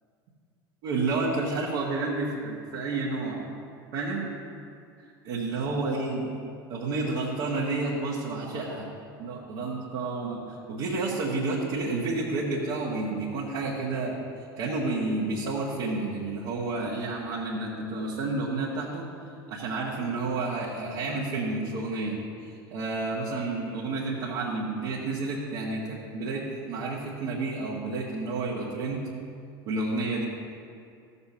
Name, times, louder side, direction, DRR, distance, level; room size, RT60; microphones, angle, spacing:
voice 1, 0.8-3.4 3.9-4.3 5.2-6.3 6.7-8.9 9.2-10.4 10.7-14.2 14.6-19.0 19.5-22.2 22.4-29.1 29.6-30.2, right 3 dB, 55° right, -6 dB, 1.6 m, -30 dB
15.5 x 6.9 x 2.9 m, 2.3 s
figure-of-eight pair, 75°, 13 cm